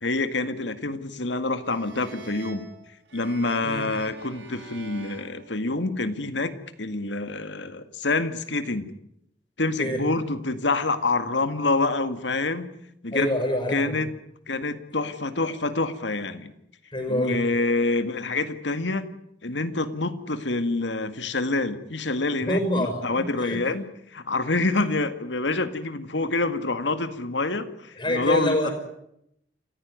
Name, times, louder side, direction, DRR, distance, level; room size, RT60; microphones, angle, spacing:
voice 1, 0.0-2.7 3.1-8.9 9.6-12.7 13.0-13.4 13.7-14.1 14.5-16.5 17.1-19.1 19.4-23.8 24.1-28.7, left 3 dB, 75° left, 10 dB, 2.0 m, -27 dB
sound 1, 1.6-6.2, right 2 dB, 85° right, 5.4 m, -45 dB
voice 2, 13.1-14.0 16.9-17.4 22.4-23.6 28.0-28.7, equal, 30° left, 4 dB, 5.5 m, -26 dB
28.0 x 15.5 x 9.6 m, 0.78 s
head